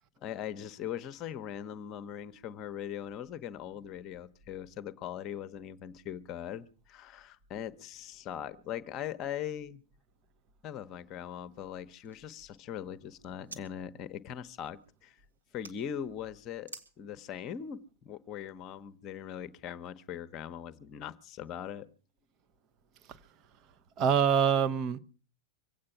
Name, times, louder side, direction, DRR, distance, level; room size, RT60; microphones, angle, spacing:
voice 1, 0.2-9.8 10.6-15.2 15.5-21.9, left 9 dB, 35° left, 1.0 m, -40 dB
sound 1, 11.5-13.7 14.0-15.8 16.6-16.9, right 3 dB, 80° right, 2.0 m, -53 dB
voice 2, 24.0-25.0, right 7 dB, 35° right, 1.0 m, -25 dB
24.5 x 8.7 x 5.7 m
figure-of-eight pair, 90°, 0 cm